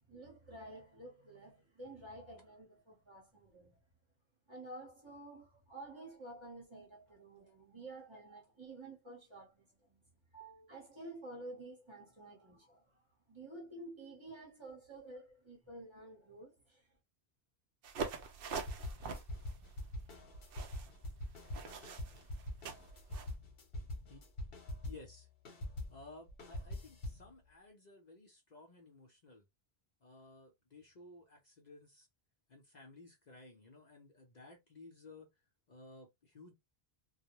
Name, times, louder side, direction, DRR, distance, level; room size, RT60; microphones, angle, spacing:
voice 1, 0.1-3.8 4.5-10.0 10.7-13.0 13.3-16.9, right 2 dB, 30° right, 0.9 m, -51 dB
voice 2, 10.3-10.7 24.1-24.2 24.8-25.3 25.9-29.5 30.0-32.1 32.5-35.3 35.7-36.5, left 2 dB, 50° left, 0.7 m, -56 dB
sound 1, 17.8-23.3, right 5 dB, 65° right, 0.7 m, -45 dB
sound 2, 18.5-25.2 25.4-27.3, left 1 dB, 65° left, 1.0 m, -44 dB
2.3 x 2.0 x 2.9 m
omnidirectional pair, 1.1 m